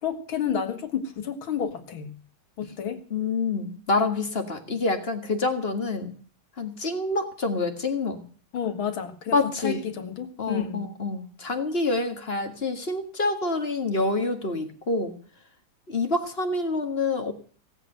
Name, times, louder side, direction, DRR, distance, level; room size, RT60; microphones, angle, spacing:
voice 1, 0.0-2.1 2.6-3.0 8.5-10.9, left 8 dB, 75° left, 8 dB, 2.4 m, -30 dB
voice 2, 3.1-6.2 6.6-8.2 9.3-9.8 10.4-15.1 15.9-17.3, left 3 dB, 30° left, 5 dB, 1.9 m, -27 dB
17.5 x 8.2 x 7.9 m, 0.43 s
omnidirectional pair, 2.3 m